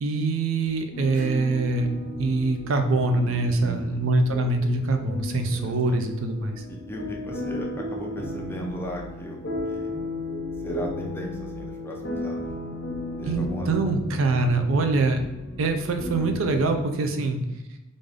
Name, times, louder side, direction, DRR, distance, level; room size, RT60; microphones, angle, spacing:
voice 1, 0.0-1.9 2.2-6.6 13.3-15.2 15.6-17.4, right 3 dB, 75° right, 6 dB, 0.5 m, -24 dB
sound 1, 0.9-16.8, left 1 dB, 55° left, 0.8 m, -34 dB
Acoustic guitar / Strum, 1.1-6.4, right 3 dB, 45° right, 0.8 m, -41 dB
voice 2, 3.6-4.0 5.3-6.0 6.7-9.4 9.6-9.9 10.6-12.5 13.2-14.0 17.2-17.3, equal, 10° left, -1 dB, 0.5 m, -37 dB
3.6 x 2.6 x 3.3 m, 1.0 s
head